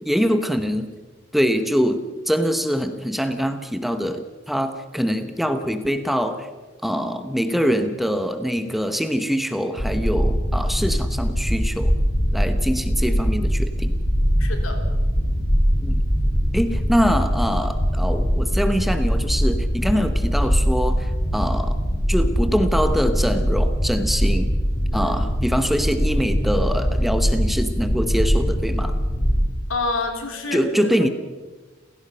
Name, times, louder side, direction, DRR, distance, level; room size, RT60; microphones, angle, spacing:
voice 1, 0.0-0.9 1.3-6.5 6.8-11.9 12.3-13.9 15.8-16.0 16.5-21.8 22.1-24.5 24.9-29.0 30.5-31.1, equal, ahead, 8 dB, 1.1 m, -24 dB
sound 1, 9.8-29.4, equal, 35° left, 4.7 m, -22 dB
voice 2, 14.4-14.8 24.9-25.1 29.7-30.9, left 3 dB, 85° left, 4 dB, 3.7 m, -28 dB
30.0 x 16.5 x 5.8 m, 1.3 s
head